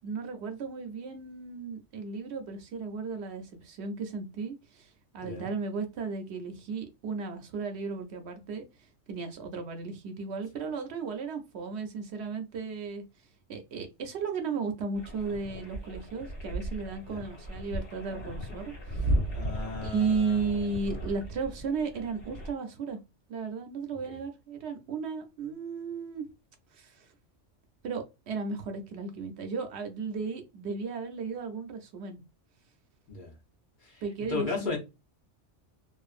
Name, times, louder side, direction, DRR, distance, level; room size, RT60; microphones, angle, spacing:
voice 1, 0.0-8.7 9.1-13.0 13.5-19.1 19.8-23.0 23.3-26.3 26.7-27.1 27.8-32.2 34.0-34.8, right 4 dB, 70° right, 0.8 m, -35 dB
sound 1, 14.9-22.5, right 1 dB, 65° left, 1.3 m, -35 dB
voice 2, 19.3-21.0 33.1-33.3 33.8-34.0 34.3-34.8, left 3 dB, 45° left, 0.9 m, -36 dB
2.5 x 2.4 x 2.4 m
omnidirectional pair, 1.2 m